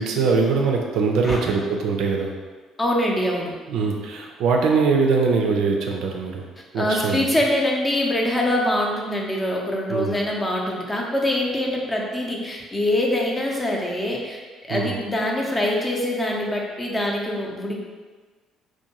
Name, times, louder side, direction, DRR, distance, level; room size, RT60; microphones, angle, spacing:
voice 1, 0.0-2.3 3.7-6.4 6.7-7.2 9.9-10.2 14.7-14.9, right 4 dB, 70° right, 1 dB, 0.3 m, -22 dB
voice 2, 2.8-3.5 6.8-17.8, left 1 dB, 25° left, -1 dB, 0.6 m, -24 dB
2.5 x 2.2 x 2.9 m, 1.4 s
hypercardioid pair, 55°, 0 cm